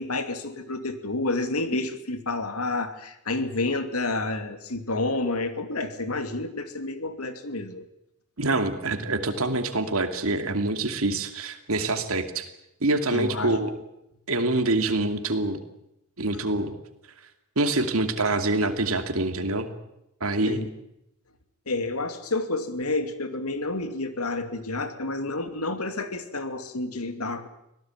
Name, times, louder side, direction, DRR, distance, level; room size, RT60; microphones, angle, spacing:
voice 1, 0.0-7.8 13.1-13.6 20.3-20.7 21.7-27.5, left 2 dB, 85° left, 9 dB, 2.6 m, -29 dB
voice 2, 8.4-12.5 12.8-13.7 14.3-15.6 16.2-16.7 17.6-19.7 20.2-20.6, right 2 dB, 65° right, 7 dB, 2.7 m, -25 dB
24.5 x 17.5 x 9.0 m, 0.83 s
head